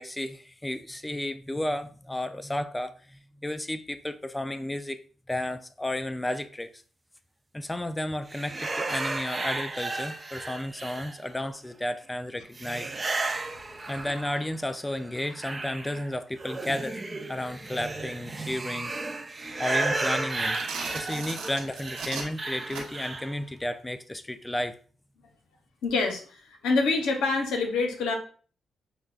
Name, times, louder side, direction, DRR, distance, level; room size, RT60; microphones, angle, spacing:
voice 1, 0.0-5.0 5.3-6.8 7.5-12.9 13.9-17.0 17.3-18.9 19.6-20.7 20.9-24.8, left 1 dB, 15° left, 0.3 m, -33 dB
sound 1, 8.3-11.5 12.5-14.6 14.9-23.4, right 2 dB, 35° right, 0.6 m, -33 dB
voice 2, 13.4-13.9 19.4-19.5 21.0-21.2 25.8-28.2, left 3 dB, 85° left, 0.7 m, -27 dB
sound 2, 20.3-23.2, right 4 dB, 90° right, 0.8 m, -38 dB
6.3 x 2.1 x 2.3 m
supercardioid pair, 50°, 0 cm